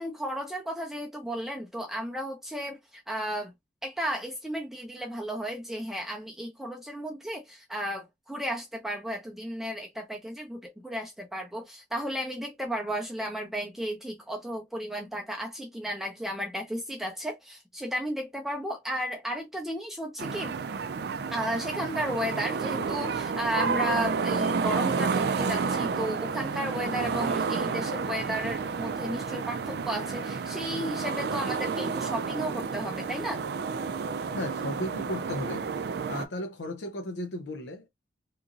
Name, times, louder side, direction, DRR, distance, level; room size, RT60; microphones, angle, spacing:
voice 1, 0.0-3.5 3.8-20.5 21.3-33.4, equal, ahead, 0.5 m, -34 dB
sound 1, 20.2-36.3, right 5 dB, 65° right, 0.4 m, -30 dB
voice 2, 34.3-35.7 36.1-37.9, left 1 dB, 80° left, 0.5 m, -35 dB
2.9 x 2.5 x 2.5 m
head